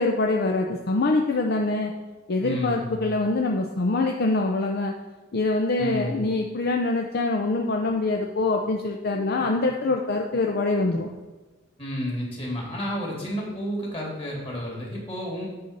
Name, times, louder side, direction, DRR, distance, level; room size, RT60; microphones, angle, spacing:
voice 1, 0.0-1.9 2.3-4.9 5.3-11.1, left 2 dB, 55° left, 1 dB, 0.6 m, -24 dB
voice 2, 2.4-3.0 5.8-6.2 11.8-15.5, equal, 30° left, -3 dB, 2.6 m, -31 dB
8.4 x 4.1 x 6.5 m, 1.3 s
head